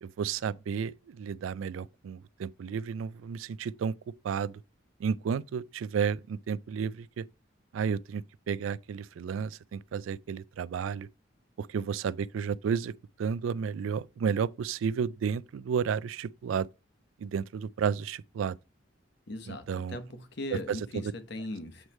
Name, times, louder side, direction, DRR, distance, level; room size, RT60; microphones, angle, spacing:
voice 1, 0.0-3.9 4.2-4.5 5.0-7.3 7.7-11.1 11.6-12.9 13.2-16.7 17.2-18.6 19.5-20.0 20.7-20.8, right 6 dB, 85° right, 0.3 m, -32 dB
voice 2, 19.3-21.9, left 1 dB, 60° left, 1.0 m, -39 dB
7.9 x 3.2 x 4.3 m
head